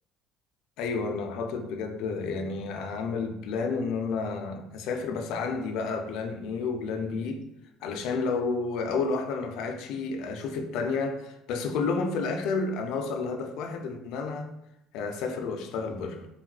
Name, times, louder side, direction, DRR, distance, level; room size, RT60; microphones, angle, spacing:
voice 1, 0.8-7.4 7.8-14.5 14.9-16.3, left 4 dB, 75° left, 0.3 m, -31 dB
3.5 x 2.3 x 2.3 m
cardioid pair, 125°, 0 cm